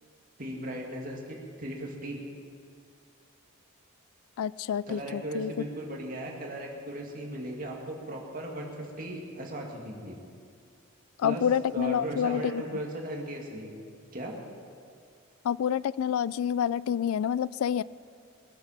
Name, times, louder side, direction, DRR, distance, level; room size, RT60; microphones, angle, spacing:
voice 1, 0.4-2.2 4.9-10.2 11.2-11.5 11.7-13.7 14.1-14.4, right 1 dB, 40° right, 0 dB, 2.2 m, -37 dB
voice 2, 4.4-5.5 11.2-12.6 15.4-17.8, left 8 dB, 85° left, 20 dB, 0.3 m, -28 dB
21.0 x 9.9 x 5.8 m, 2.3 s
head